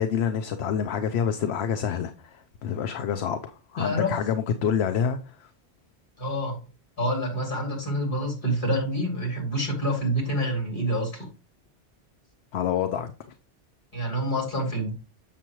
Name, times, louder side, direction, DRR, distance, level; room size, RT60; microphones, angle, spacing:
voice 1, 0.0-5.5 12.5-13.1, left 7 dB, 75° left, 0.9 m, -27 dB
voice 2, 3.8-4.1 6.2-6.5 7.0-11.3 13.9-14.9, equal, 50° left, 3.0 m, -27 dB
7.1 x 6.9 x 3.0 m
omnidirectional pair, 1.1 m